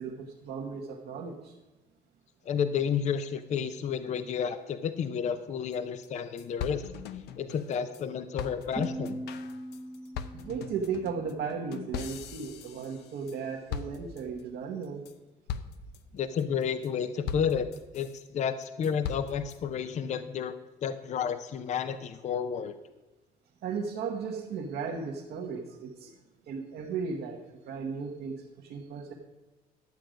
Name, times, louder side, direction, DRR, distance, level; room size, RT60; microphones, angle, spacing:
voice 1, 0.0-1.5 10.3-15.0 23.6-26.2 26.5-29.1, right 5 dB, 70° right, -1 dB, 1.2 m, -36 dB
voice 2, 2.4-6.9 7.4-9.2 16.1-20.6 20.8-22.7, left 7 dB, 45° left, 12 dB, 0.6 m, -31 dB
sound 1, 5.7-5.8 6.0-6.1 6.4-8.0 8.4-13.4 13.7-14.4 14.8-15.1 15.5-16.0 16.4-16.9 17.3-18.2 18.6-19.6, left 8 dB, 85° left, 0.7 m, -40 dB
sound 2, 8.8-11.8, right 1 dB, 10° right, 0.7 m, -40 dB
12.0 x 7.6 x 5.1 m, 1.1 s
cardioid pair, 110°, 17 cm